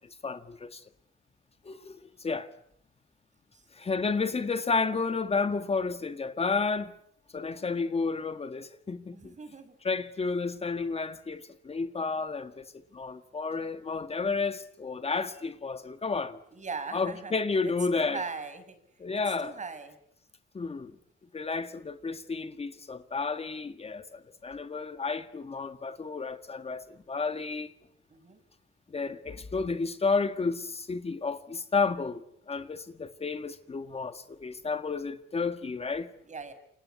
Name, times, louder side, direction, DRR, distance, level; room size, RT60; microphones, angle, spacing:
voice 1, 0.2-0.8 1.6-2.5 3.7-6.9 7.3-9.3 9.8-16.4 16.9-18.2 19.0-19.6 20.5-20.9 21.3-27.7 28.9-36.1, left 4 dB, 30° left, 1.7 m, -31 dB
voice 2, 9.1-9.7 16.5-17.3 17.6-18.8 19.4-20.0 28.1-28.4 36.3-36.5, right 4 dB, 35° right, 6.3 m, -39 dB
28.5 x 25.0 x 8.3 m
cardioid pair, 90°, 20 cm